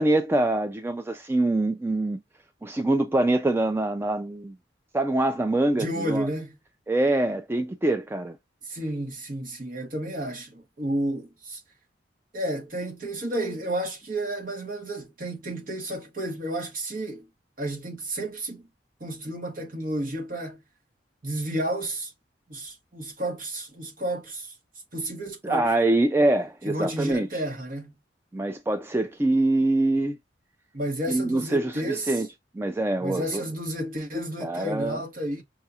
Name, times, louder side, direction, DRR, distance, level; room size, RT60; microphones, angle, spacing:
voice 1, 0.0-2.2 2.6-4.5 4.9-6.3 6.9-8.4 25.4-27.4 28.3-30.2 31.1-32.3 32.5-33.4 34.4-35.0, right 2 dB, 15° right, 0.3 m, -24 dB
voice 2, 5.7-6.5 8.7-11.6 12.3-17.3 17.6-18.7 19.0-20.6 21.2-22.1 22.5-24.5 24.9-25.7 26.6-27.9 30.7-32.2 33.0-35.4, right 1 dB, 50° right, 1.4 m, -31 dB
5.5 x 2.4 x 2.7 m
head